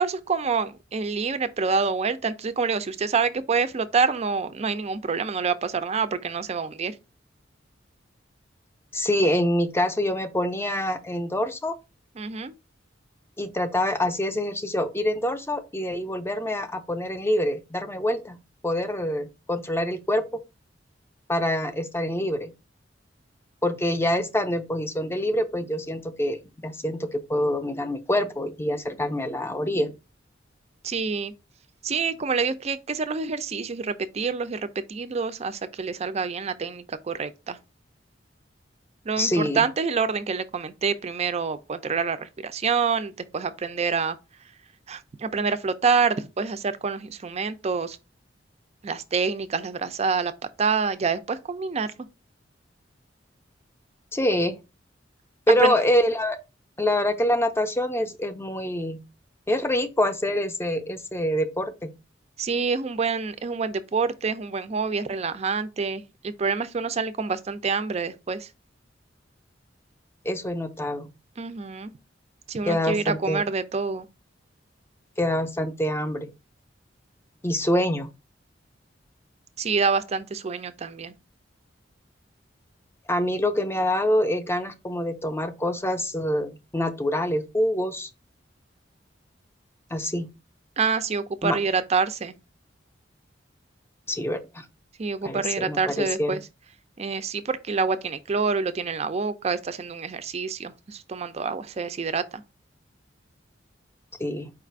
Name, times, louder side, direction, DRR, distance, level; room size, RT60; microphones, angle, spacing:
voice 1, 0.0-7.0 12.2-12.5 30.8-31.3 31.8-37.6 39.0-44.2 44.9-48.0 48.8-50.3 50.6-51.9 55.6-55.7 62.4-68.5 71.4-72.0 72.5-74.1 79.6-81.1 90.8-92.3 95.0-96.4 97.0-102.4, right 5 dB, 35° right, 0.4 m, -27 dB
voice 2, 8.9-11.7 13.4-18.4 18.6-20.2 21.3-22.5 23.6-30.0 39.2-39.6 54.1-54.6 55.5-56.4 56.8-59.0 59.5-61.9 70.2-71.1 72.7-73.4 75.2-76.3 77.4-78.1 83.1-88.1 89.9-90.3 91.4-91.6 94.1-94.7 95.2-96.3 104.2-104.5, left 1 dB, 15° left, 0.5 m, -25 dB
4.7 x 2.5 x 4.5 m
head